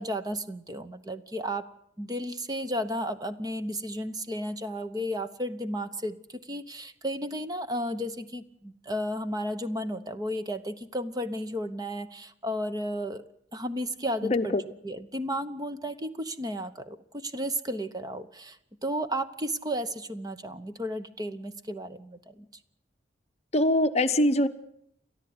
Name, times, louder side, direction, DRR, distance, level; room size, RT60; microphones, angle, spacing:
voice 1, 0.0-1.7 2.0-13.2 13.5-14.5 14.8-18.6 18.8-22.4, equal, 20° right, 10 dB, 1.0 m, -33 dB
voice 2, 14.2-14.6 23.5-24.5, left 1 dB, 35° left, 9 dB, 0.9 m, -23 dB
29.5 x 13.0 x 9.6 m, 0.74 s
head